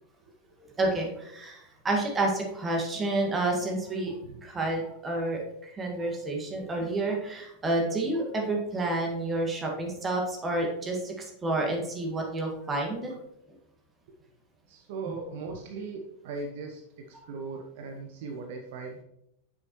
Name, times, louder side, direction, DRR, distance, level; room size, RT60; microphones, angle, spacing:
voice 1, 0.8-4.1 4.4-13.1, right 2 dB, 20° right, 0 dB, 1.7 m, -29 dB
voice 2, 14.7-19.0, right 4 dB, 50° right, 3 dB, 0.7 m, -39 dB
7.6 x 6.2 x 3.0 m, 0.80 s
figure-of-eight pair, 90°, 0 cm